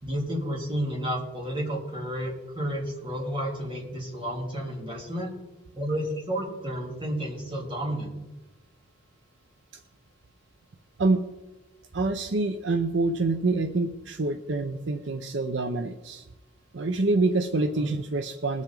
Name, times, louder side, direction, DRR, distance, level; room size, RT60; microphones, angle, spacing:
voice 1, 0.0-5.3 5.7-8.1 17.6-17.9, equal, 25° right, -2 dB, 3.2 m, -31 dB
voice 2, 11.9-16.2 16.7-18.6, right 3 dB, 65° right, 8 dB, 0.6 m, -26 dB
21.0 x 7.3 x 3.9 m, 1.1 s
head